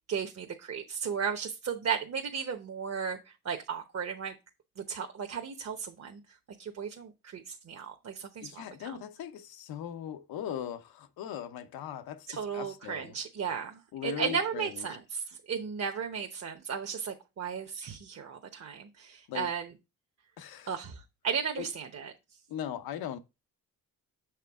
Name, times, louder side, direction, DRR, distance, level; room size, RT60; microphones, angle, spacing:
voice 1, 0.1-3.2 3.4-4.3 4.8-6.2 6.6-9.0 12.3-19.7 20.7-22.1, right 6 dB, 45° right, 0.9 m, -35 dB
voice 2, 8.4-13.2 13.9-14.8 19.3-19.5 20.4-20.7 21.6-21.7 22.5-23.2, left 9 dB, 85° left, 0.8 m, -39 dB
6.6 x 4.6 x 3.5 m
cardioid pair, 75°, 35 cm